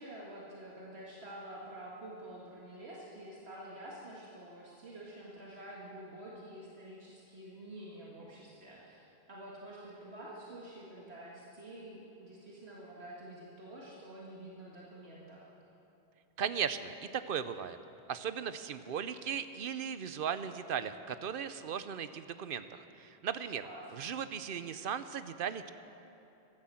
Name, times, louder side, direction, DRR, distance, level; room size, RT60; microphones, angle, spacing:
voice 1, 0.0-9.0 9.3-15.5 23.6-23.8, right 1 dB, 85° right, -5 dB, 2.1 m, -48 dB
voice 2, 16.4-17.8 18.1-23.7 23.9-25.7, right 7 dB, 65° right, 12 dB, 0.8 m, -37 dB
14.5 x 12.0 x 7.6 m, 2.9 s
omnidirectional pair, 1.0 m